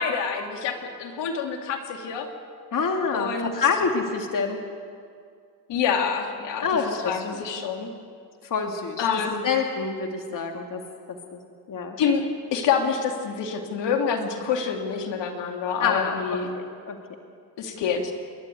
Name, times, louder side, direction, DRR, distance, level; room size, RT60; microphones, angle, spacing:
voice 1, 0.0-2.3 3.1-3.5 5.7-6.7 7.1-7.9 9.0-9.4 12.0-16.5 17.6-18.1, left 6 dB, 65° left, 3 dB, 2.9 m, -27 dB
voice 2, 2.7-4.6 6.6-7.4 8.4-9.1 9.4-10.8 11.1-11.4 11.7-12.0 15.8-17.0, left 5 dB, 45° left, 3 dB, 2.4 m, -27 dB
28.5 x 12.0 x 9.3 m, 2.2 s
supercardioid pair, 70°, 45 cm